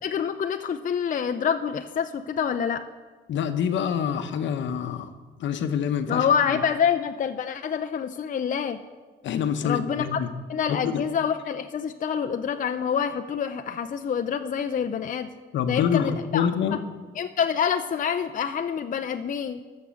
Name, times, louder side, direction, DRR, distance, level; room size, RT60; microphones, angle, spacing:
voice 1, 0.0-2.9 6.1-8.8 9.6-10.2 10.5-15.3 15.7-16.8 17.2-19.6, left 7 dB, 40° left, 7 dB, 0.5 m, -27 dB
voice 2, 3.3-5.1 5.4-6.2 6.5-6.6 9.2-10.3 10.7-11.0 15.5-16.8, left 8 dB, 70° left, 8 dB, 0.9 m, -26 dB
14.0 x 6.5 x 6.3 m, 1.3 s
cardioid pair, 90°, 20 cm